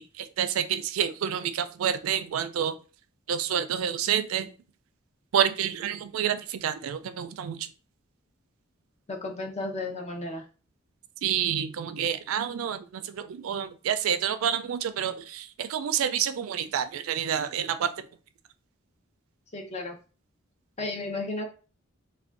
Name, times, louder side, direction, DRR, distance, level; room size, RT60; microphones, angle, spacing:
voice 1, 0.0-2.8 3.3-4.5 5.3-7.7 11.2-17.9, right 9 dB, 80° right, 10 dB, 0.3 m, -28 dB
voice 2, 9.1-10.4 19.5-20.0 20.8-21.4, left 2 dB, 35° left, 3 dB, 0.6 m, -33 dB
3.4 x 2.2 x 2.4 m, 0.35 s
head